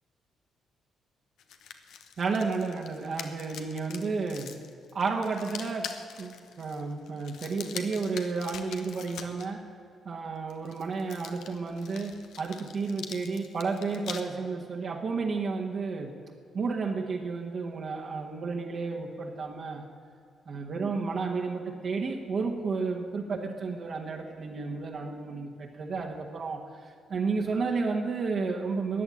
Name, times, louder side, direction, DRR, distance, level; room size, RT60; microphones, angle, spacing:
sound 1, 1.4-9.5 10.5-14.2, left 7 dB, 85° left, 1.3 m, -44 dB
voice 1, 2.2-4.5 4.9-9.7 10.0-16.1 16.5-19.9 20.5-26.6 27.1-29.0, right 4 dB, 55° right, 0 dB, 1.6 m, -32 dB
14.0 x 9.0 x 10.0 m, 2.4 s
cardioid pair, 100°, 0 cm